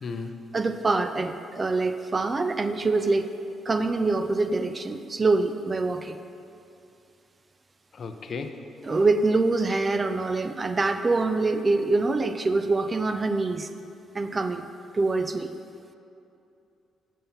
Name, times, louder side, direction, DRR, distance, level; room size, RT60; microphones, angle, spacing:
voice 1, 0.0-0.4 7.9-9.1, left 4 dB, 50° left, 7 dB, 0.6 m, -36 dB
voice 2, 0.5-3.3 3.7-6.2 8.8-13.7 14.1-14.6 14.9-15.5, right 3 dB, 30° right, 9 dB, 0.4 m, -25 dB
7.4 x 5.4 x 5.7 m, 2.7 s
cardioid pair, 90°, 0 cm